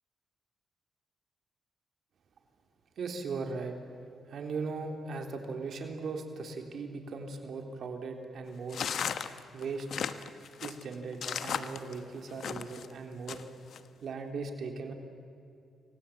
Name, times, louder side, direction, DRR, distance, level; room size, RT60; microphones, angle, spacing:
voice 1, 3.0-3.7 4.3-8.8 9.5-9.9 10.6-13.4 14.0-14.9, right 4 dB, 65° right, 4 dB, 3.5 m, -38 dB
sound 1, 8.7-12.9 13.3-13.8, left 7 dB, 70° left, 1.2 m, -36 dB
29.0 x 23.0 x 8.6 m, 2.6 s
cardioid pair, 90°, 0 cm